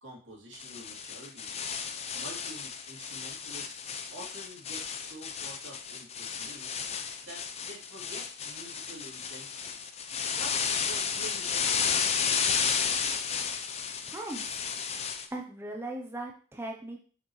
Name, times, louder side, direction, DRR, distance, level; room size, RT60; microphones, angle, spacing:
voice 1, 0.0-1.6 2.1-6.7 7.2-9.8 10.3-13.4, right 1 dB, 80° right, -3 dB, 2.8 m, -48 dB
sound 1, 0.5-15.3, left 6 dB, 35° left, 0.6 m, -33 dB
voice 2, 14.1-14.6 15.3-17.0, right 2 dB, 10° right, 2 dB, 0.7 m, -38 dB
6.8 x 6.2 x 3.1 m, 0.41 s
head